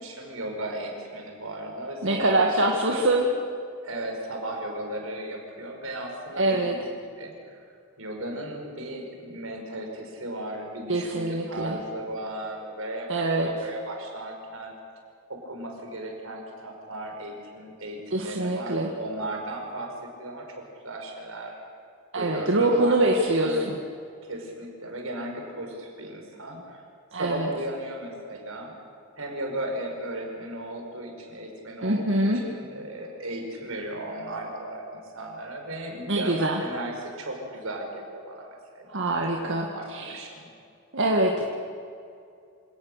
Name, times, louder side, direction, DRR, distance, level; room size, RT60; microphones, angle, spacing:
voice 1, 0.0-3.1 3.8-6.8 7.2-7.3 8.0-14.7 15.3-19.9 20.2-20.5 20.8-21.5 22.1-23.0 23.4-23.7 24.2-26.8 27.1-28.7 29.2-32.0 32.4-39.1 39.4-40.5, right 1 dB, 80° right, 2 dB, 5.2 m, -36 dB
voice 2, 2.0-3.3 6.4-6.7 10.9-11.8 13.1-13.5 18.1-18.9 22.1-23.8 27.1-27.5 31.8-32.5 36.1-36.6 38.9-40.2 40.9-41.4, right 2 dB, 65° right, 0 dB, 1.9 m, -24 dB
27.0 x 18.0 x 6.7 m, 2.4 s
head